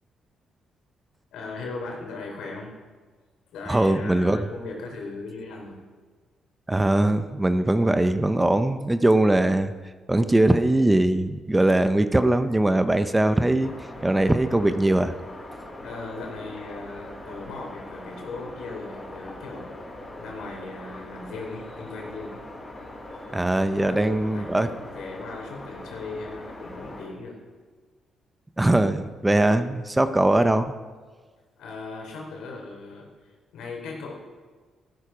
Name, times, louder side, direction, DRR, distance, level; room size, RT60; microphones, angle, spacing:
voice 1, 1.3-2.7 3.5-5.8 15.8-19.7 20.2-22.4 23.6-27.4 31.6-34.2, left 3 dB, 85° left, 0 dB, 3.6 m, -38 dB
voice 2, 3.7-4.4 6.7-9.7 10.1-13.7 14.0-15.1 23.3-24.7 28.6-30.7, right 1 dB, 10° right, 10 dB, 0.7 m, -21 dB
sound 1, 13.6-27.1, left 1 dB, 25° left, 5.3 m, -41 dB
14.5 x 12.0 x 5.0 m, 1.4 s
cardioid pair, 90°, 0 cm